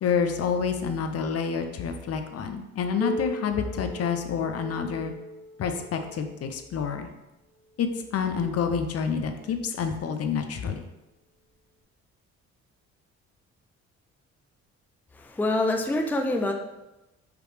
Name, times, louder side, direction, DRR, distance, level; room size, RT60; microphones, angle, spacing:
voice 1, 0.0-5.1 5.6-7.1 7.8-10.9, left 6 dB, 55° left, 6 dB, 0.6 m, -28 dB
Piano, 3.0-8.3 9.2-9.3 9.8-9.9 10.7-10.8 11.8-11.9, equal, 25° left, 1.3 m, -39 dB
voice 2, 15.1-16.5, left 2 dB, 5° left, 4 dB, 0.4 m, -26 dB
4.9 x 3.1 x 3.2 m, 0.97 s
cardioid pair, 90°, 30 cm